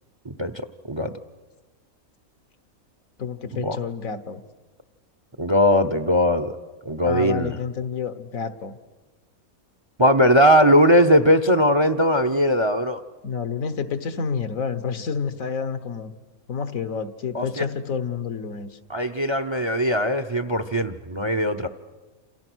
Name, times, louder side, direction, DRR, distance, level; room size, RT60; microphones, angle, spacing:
voice 1, 3.2-4.4 7.0-8.8 13.2-16.1 16.5-18.7, left 6 dB, 70° left, 11 dB, 1.6 m, -29 dB
voice 2, 5.4-6.6 6.9-7.6 10.0-13.0 17.3-17.6 18.9-21.7, equal, 25° right, 11 dB, 0.7 m, -19 dB
29.0 x 27.5 x 6.3 m, 1.2 s
omnidirectional pair, 1.5 m